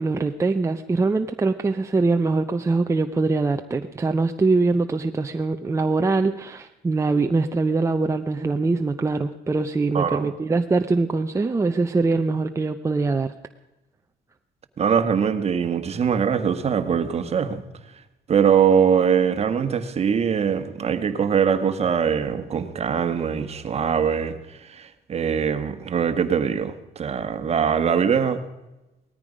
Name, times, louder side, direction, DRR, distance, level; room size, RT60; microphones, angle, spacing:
voice 1, 0.0-13.3, right 3 dB, 15° right, 6 dB, 0.7 m, -23 dB
voice 2, 9.9-10.3 14.8-17.6 18.3-24.4 24.7-28.4, right 7 dB, 40° right, 9 dB, 1.4 m, -22 dB
18.5 x 14.0 x 5.1 m, 1.0 s
cardioid pair, 110°, 17 cm